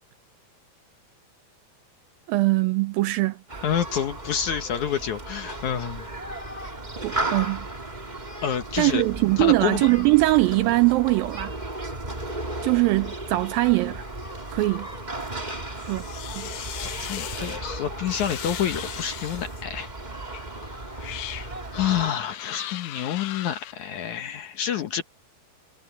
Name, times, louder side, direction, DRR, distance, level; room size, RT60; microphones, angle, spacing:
voice 1, 2.3-3.6 7.0-7.7 8.8-11.6 12.6-14.0 14.5-14.9 15.8-16.0 16.4-16.5, right 20 dB, 80° right, 2.1 m, -22 dB
Human group actions, 3.5-22.1, right 2 dB, 15° right, 1.7 m, -35 dB
voice 2, 3.6-6.1 8.4-9.0 9.4-9.9 16.8-19.9 20.6-21.4 21.7-25.0, left 9 dB, 65° left, 2.2 m, -28 dB
sound 1, 15.8-17.6 18.1-19.6 20.3-20.5 20.9-21.5 22.2-23.7, left 14 dB, 80° left, 1.8 m, -37 dB
omnidirectional pair, 4.6 m